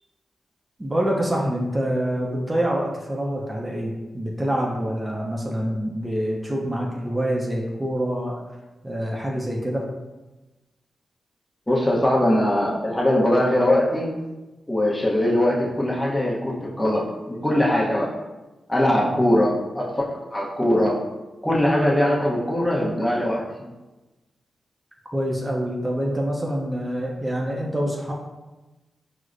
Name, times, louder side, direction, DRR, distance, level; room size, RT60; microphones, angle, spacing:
voice 1, 0.8-8.4 8.8-9.9 18.9-19.2 25.1-28.1, equal, 20° right, -2 dB, 0.5 m, -26 dB
voice 2, 11.7-14.1 14.7-18.2 18.7-21.0 21.4-23.7, left 1 dB, 15° left, -4 dB, 0.8 m, -21 dB
4.6 x 2.0 x 2.5 m, 1.1 s
supercardioid pair, 45°, 0 cm